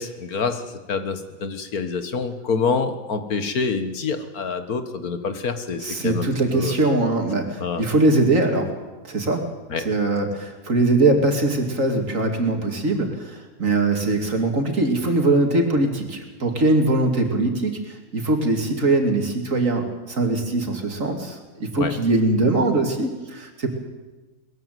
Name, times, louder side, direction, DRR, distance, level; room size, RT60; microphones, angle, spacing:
voice 1, 0.0-6.3 6.5-6.7 7.6-7.8 9.7-9.9 21.8-21.9, left 5 dB, 85° left, 8 dB, 2.0 m, -26 dB
voice 2, 5.8-8.7 9.0-9.5 9.8-23.7, right 2 dB, 60° right, 4 dB, 3.0 m, -21 dB
20.5 x 14.5 x 9.3 m, 1.2 s
omnidirectional pair, 1.5 m